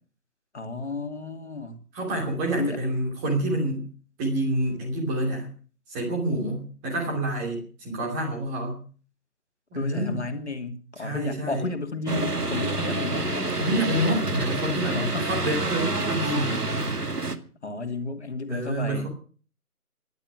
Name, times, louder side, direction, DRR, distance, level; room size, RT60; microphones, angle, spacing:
voice 1, 0.5-1.8 2.6-2.8 9.7-13.3 14.6-15.3 17.3-19.1, left 3 dB, 45° left, 5 dB, 2.7 m, -33 dB
voice 2, 1.9-3.8 4.2-5.5 5.9-8.8 9.7-10.2 11.0-11.6 13.6-16.7 18.5-19.1, right 1 dB, 5° right, 0 dB, 2.8 m, -28 dB
sound 1, 12.1-17.3, right 2 dB, 85° right, 2.3 m, -28 dB
18.0 x 12.0 x 6.0 m, 0.40 s
figure-of-eight pair, 160°, 46 cm